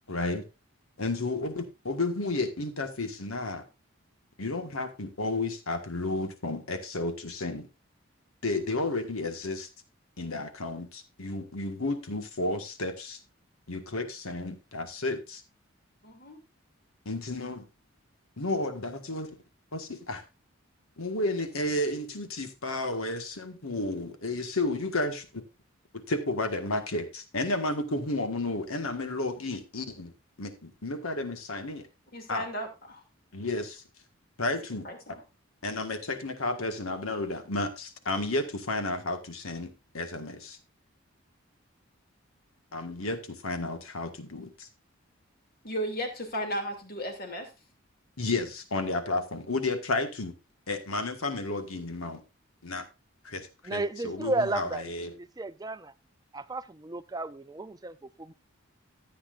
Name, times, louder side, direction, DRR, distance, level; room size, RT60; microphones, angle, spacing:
voice 1, 0.1-0.4 1.0-3.6 4.4-7.7 8.4-9.7 10.2-13.2 13.7-15.4 17.0-17.6 18.4-19.3 19.7-20.2 21.0-25.3 25.9-30.1 30.4-31.9 32.3-32.4 33.3-33.8 34.4-34.8 35.6-40.6 42.7-44.7 48.2-50.3 50.7-52.2 52.6-52.8 53.2-55.1, left 2 dB, 90° left, 1.6 m, -32 dB
voice 2, 1.0-1.4 16.0-16.4 32.1-33.0 34.8-35.2 45.6-47.5, equal, 45° left, 2.6 m, -35 dB
voice 3, 53.6-54.8 55.2-55.9 56.3-58.3, right 2 dB, 20° right, 0.4 m, -33 dB
14.0 x 8.6 x 2.5 m
head